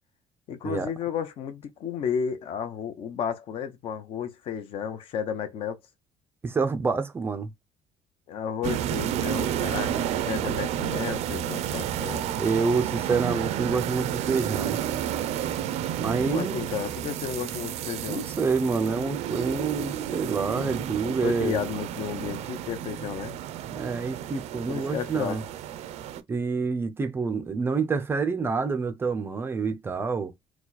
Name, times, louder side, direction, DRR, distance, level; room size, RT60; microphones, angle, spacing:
voice 1, 0.5-5.8 8.3-12.4 16.2-18.3 21.0-23.4 24.7-25.4, left 7 dB, 50° left, 0.9 m, -33 dB
voice 2, 6.4-7.5 12.4-14.8 16.0-16.6 18.1-21.6 23.0-23.1 23.7-25.4 26.3-30.3, right 4 dB, 20° right, 0.5 m, -27 dB
sound 1, 8.6-26.2, right 10 dB, 65° right, 0.6 m, -31 dB
4.6 x 2.3 x 4.0 m
cardioid pair, 175°, 12 cm